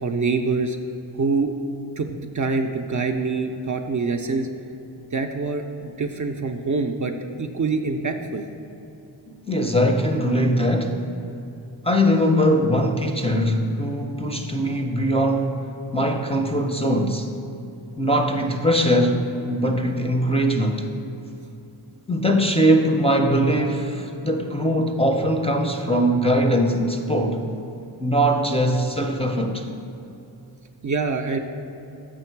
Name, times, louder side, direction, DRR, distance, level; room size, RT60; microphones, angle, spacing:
voice 1, 0.0-0.8 1.2-1.5 2.0-4.5 5.1-8.4 30.8-31.4, right 4 dB, 45° right, 4 dB, 0.4 m, -25 dB
voice 2, 9.5-11.0 11.8-17.3 18.0-20.9 22.1-27.4 28.0-29.7, equal, 15° left, 3 dB, 0.4 m, -21 dB
6.3 x 5.9 x 4.5 m, 2.8 s
wide cardioid pair, 70°, 46 cm